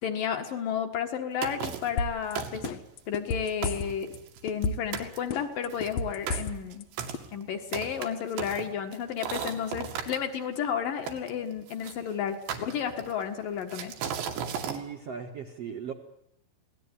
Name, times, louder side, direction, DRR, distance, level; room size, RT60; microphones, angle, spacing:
voice 1, 0.0-2.8 3.1-4.1 4.4-6.9 7.3-14.0, left 8 dB, 60° left, 6 dB, 3.0 m, -32 dB
sound 1, 1.4-2.0 2.4-2.9 3.3-3.4 3.6-4.7 4.9-5.2 5.7-10.2 11.1-12.0 12.5-13.2 13.7-14.8, right 8 dB, 80° right, 4.3 m, -36 dB
sound 2, 2.0-2.3 2.6-4.2 4.5-5.0 5.3-6.8 7.1-7.2, left 3 dB, 80° left, 1.5 m, -31 dB
voice 2, 14.6-15.9, right 7 dB, 55° right, 3 dB, 1.8 m, -38 dB
24.5 x 18.0 x 9.8 m, 0.77 s
omnidirectional pair, 4.9 m